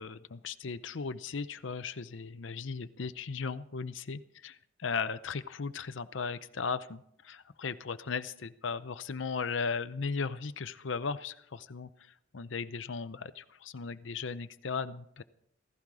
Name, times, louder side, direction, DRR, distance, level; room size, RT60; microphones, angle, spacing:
voice 1, 0.0-4.5 4.8-15.2, left 5 dB, 75° left, 13 dB, 0.7 m, -37 dB
16.0 x 16.0 x 4.8 m, 0.70 s
head